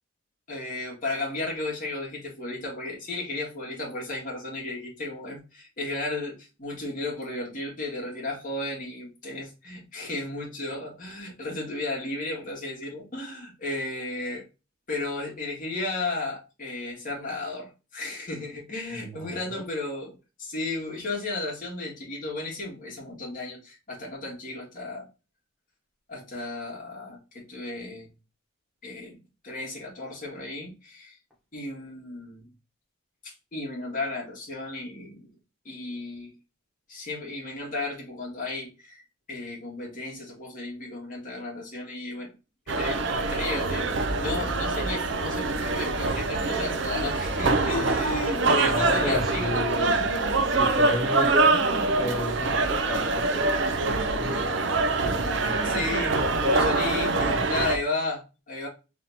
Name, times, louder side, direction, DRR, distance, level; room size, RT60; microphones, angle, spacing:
voice 1, 0.5-14.4 14.9-25.1 26.1-28.1 28.8-31.2 31.5-32.5 33.2-35.3 35.7-36.3 36.9-39.0 39.3-42.3 42.7-50.1 50.4-50.6 55.6-58.7, left 2 dB, 40° left, -2 dB, 1.9 m, -34 dB
voice 2, 18.9-19.6 48.6-50.0 50.4-56.6 57.1-57.6, left 2 dB, ahead, -4 dB, 1.4 m, -33 dB
sound 1, 42.7-57.8, right 3 dB, 60° right, 0.6 m, -25 dB
3.9 x 3.6 x 2.8 m, 0.30 s
head